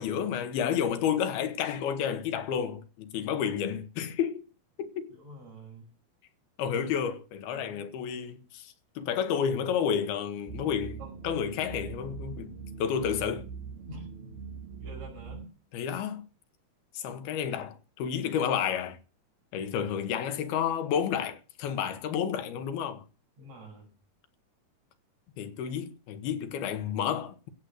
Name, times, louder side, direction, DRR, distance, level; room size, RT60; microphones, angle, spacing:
voice 1, 0.0-4.4 4.8-5.2 6.6-12.5 12.8-13.4 15.7-16.3 16.9-19.0 19.5-23.0 25.4-27.5, left 8 dB, 85° left, 3.1 m, -31 dB
voice 2, 5.1-5.9 7.5-7.9 11.0-11.1 13.9-14.1 14.8-15.4 23.4-23.9, right 1 dB, 45° right, 6.8 m, -47 dB
sound 1, 10.5-15.5, right 6 dB, 80° right, 3.6 m, -42 dB
15.0 x 8.1 x 6.5 m
omnidirectional pair, 4.4 m